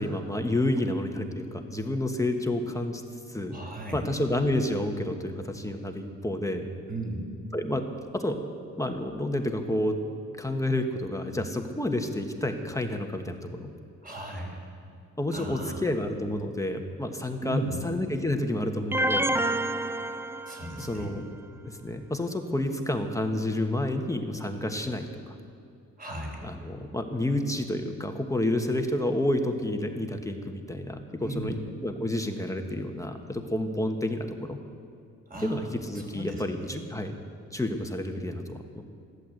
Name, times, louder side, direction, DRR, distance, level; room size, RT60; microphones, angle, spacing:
voice 1, 0.0-3.0 3.3-3.6 3.9-6.7 7.5-7.8 8.1-8.4 8.8-10.0 10.4-13.7 15.2-19.3 20.8-21.2 21.6-25.3 26.4-31.6 31.8-34.6 35.4-37.2 37.5-38.8, left 1 dB, 10° left, 4 dB, 1.3 m, -30 dB
voice 2, 3.5-4.0 6.9-7.2 14.0-14.6 15.3-15.8 17.4-17.8 20.4-21.2 26.0-26.5 31.2-31.5 35.3-36.8, right 1 dB, 30° right, 0 dB, 4.9 m, -36 dB
sound 1, 18.9-21.0, right 1 dB, 10° right, 0.6 m, -28 dB
15.0 x 11.5 x 8.0 m, 2.3 s
cardioid pair, 90°, 30 cm